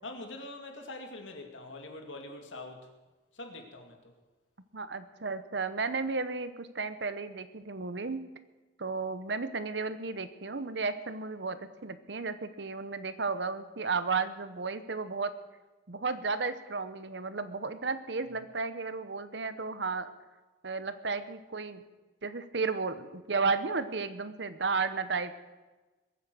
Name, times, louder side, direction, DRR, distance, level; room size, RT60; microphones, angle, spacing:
voice 1, 0.0-2.9 3.3-4.1, left 2 dB, 85° left, 4 dB, 2.4 m, -44 dB
voice 2, 4.7-8.2 8.8-15.3 15.9-20.1 20.6-21.8 22.2-25.3, right 4 dB, 65° right, 12 dB, 1.0 m, -33 dB
21.5 x 9.2 x 6.2 m, 1.2 s
head